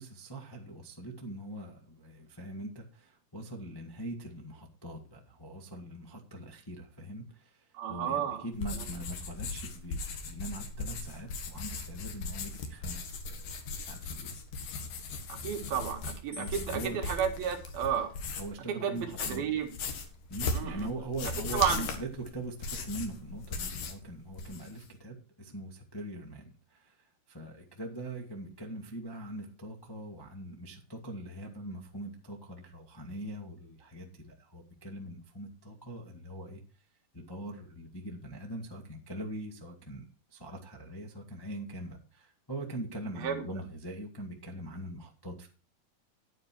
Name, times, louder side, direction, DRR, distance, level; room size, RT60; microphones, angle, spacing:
voice 1, 0.0-13.5 13.8-14.4 16.4-17.0 18.4-19.6 20.3-36.6 37.1-45.5, right 1 dB, 15° left, 0 dB, 0.8 m, -42 dB
voice 2, 7.7-8.5 8.7-8.9 15.3-18.1 18.7-19.7 20.5-20.9 21.5-21.8 43.1-43.4, right 8 dB, 80° right, 3 dB, 3.8 m, -32 dB
sound 1, 8.5-18.6 19.0-24.0 24.3-24.8, left 3 dB, 70° left, 3.3 m, -38 dB
sound 2, 16.3-18.5 19.3-19.9, left 3 dB, 5° right, 4.3 m, -54 dB
10.5 x 9.5 x 4.6 m, 0.36 s
omnidirectional pair, 4.2 m